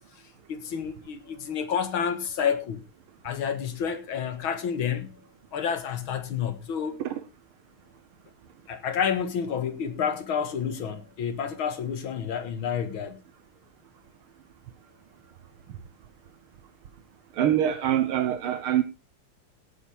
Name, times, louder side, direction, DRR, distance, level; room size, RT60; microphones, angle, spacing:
voice 1, 0.5-2.8 3.2-5.2 5.5-7.0 8.7-13.2, left 7 dB, 70° left, 2.3 m, -29 dB
voice 2, 17.4-18.8, right 11 dB, 75° right, 1.8 m, -24 dB
18.0 x 8.9 x 3.5 m
omnidirectional pair, 2.4 m